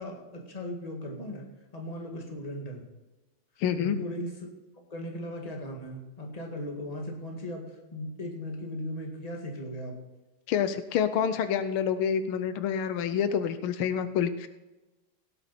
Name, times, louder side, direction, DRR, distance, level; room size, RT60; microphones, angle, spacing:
voice 1, 0.0-1.4 1.7-2.9 3.8-4.5 4.9-10.0, left 1 dB, 20° left, 0 dB, 1.9 m, -37 dB
voice 2, 3.6-4.0 10.5-14.5, left 8 dB, 85° left, 12 dB, 1.6 m, -27 dB
17.0 x 8.1 x 4.3 m, 1.1 s
omnidirectional pair, 2.3 m